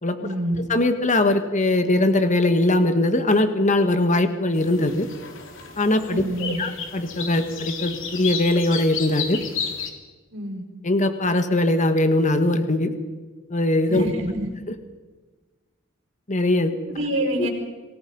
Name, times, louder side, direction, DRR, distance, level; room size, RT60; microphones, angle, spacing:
voice 1, 0.2-0.6 6.0-6.6 10.3-10.6 13.9-14.5 16.9-17.5, right 1 dB, 70° right, 3 dB, 5.5 m, -27 dB
voice 2, 0.7-5.1 5.8-9.4 10.8-12.9 13.5-14.1 16.3-16.8 17.4-17.5, left 1 dB, 40° left, 8 dB, 1.7 m, -21 dB
sound 1, 4.5-9.9, left 6 dB, 70° left, 3.0 m, -33 dB
27.0 x 19.5 x 5.5 m, 1.3 s
head